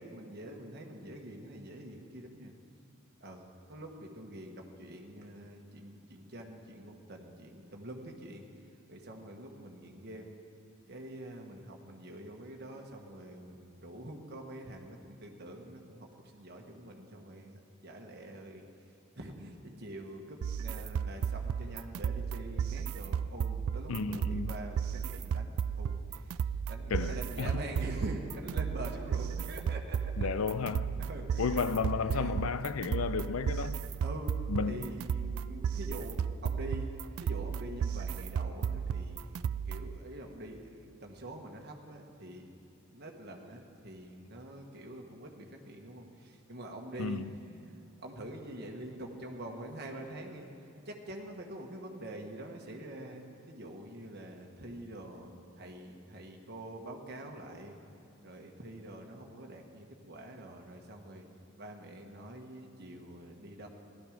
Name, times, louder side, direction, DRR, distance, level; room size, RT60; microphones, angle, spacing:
voice 1, 0.0-2.5 3.2-10.4 10.9-30.3 31.0-31.6 32.1-32.4 34.0-42.5 42.9-50.5 50.8-57.8 58.2-61.2 61.6-63.7, right 1 dB, 50° right, 2 dB, 1.3 m, -45 dB
sound 1, 20.4-40.0, right 7 dB, 80° right, 0.3 m, -34 dB
voice 2, 23.9-24.5 26.9-27.5 30.2-30.9 31.4-33.8 34.5-34.8 47.0-47.3, left 5 dB, 80° left, 14 dB, 0.5 m, -33 dB
16.0 x 12.0 x 5.0 m, 2.7 s
head